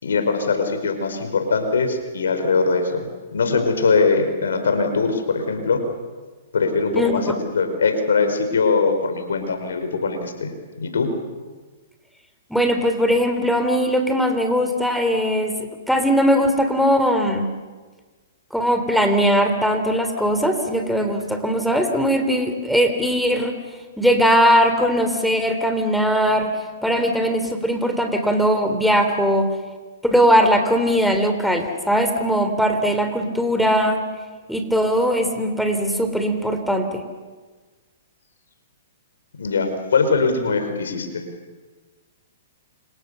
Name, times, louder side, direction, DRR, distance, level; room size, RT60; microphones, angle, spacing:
voice 1, 0.0-5.8 6.5-10.5 10.8-11.1 39.4-41.2, left 4 dB, 85° left, 7 dB, 5.0 m, -21 dB
voice 2, 6.9-7.4 12.5-17.5 18.5-23.5 24.0-26.5 26.8-29.5 30.0-34.0 34.5-37.0, equal, ahead, 6 dB, 3.5 m, -20 dB
30.0 x 26.0 x 6.9 m, 1.4 s
hypercardioid pair, 135°, 0 cm